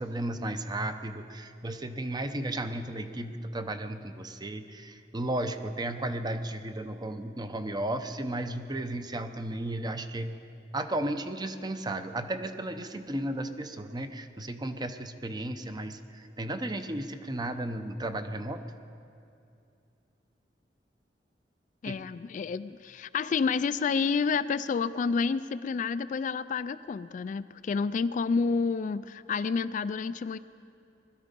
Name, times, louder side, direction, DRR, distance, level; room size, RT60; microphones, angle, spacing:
voice 1, 0.0-10.3 10.7-18.6 21.9-22.0, right 1 dB, 25° right, 8 dB, 0.7 m, -34 dB
voice 2, 21.8-30.4, left 5 dB, 45° left, 15 dB, 0.3 m, -29 dB
20.5 x 13.0 x 5.3 m, 2.5 s
head